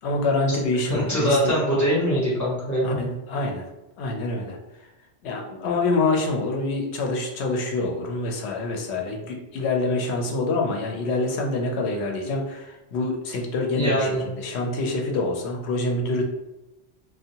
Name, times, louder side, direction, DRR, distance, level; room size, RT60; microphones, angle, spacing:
voice 1, 0.0-1.5 2.8-3.6 4.0-4.6 5.2-16.2, left 2 dB, 85° left, 2 dB, 0.9 m, -26 dB
voice 2, 0.9-3.0 13.7-14.2, equal, 15° left, -8 dB, 1.0 m, -23 dB
2.6 x 2.2 x 2.8 m, 0.97 s
omnidirectional pair, 1.1 m